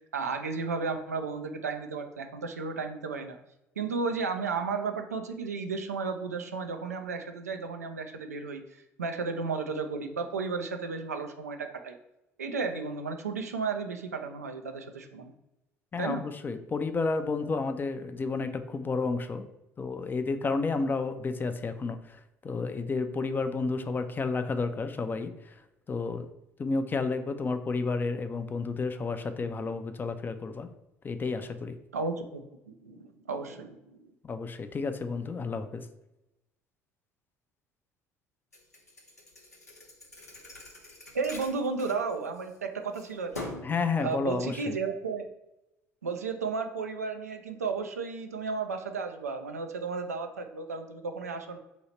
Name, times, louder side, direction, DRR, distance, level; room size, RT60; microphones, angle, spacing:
voice 1, 0.1-3.4 3.8-8.6 9.0-12.0 12.4-15.3 16.0-16.2 31.9-32.4 32.8-34.1 41.1-43.5 44.0-45.3 46.0-51.6, right 4 dB, 85° right, 6 dB, 0.3 m, -33 dB
voice 2, 15.9-19.5 19.8-25.6 25.9-26.3 26.6-30.7 31.0-31.7 34.2-35.9 43.6-44.8, left 4 dB, 25° left, 9 dB, 0.4 m, -31 dB
Thump thud, 38.5-42.6 42.9-43.8, left 2 dB, 90° left, 0.6 m, -44 dB
2.9 x 2.7 x 4.2 m, 0.89 s
figure-of-eight pair, 55°, 8 cm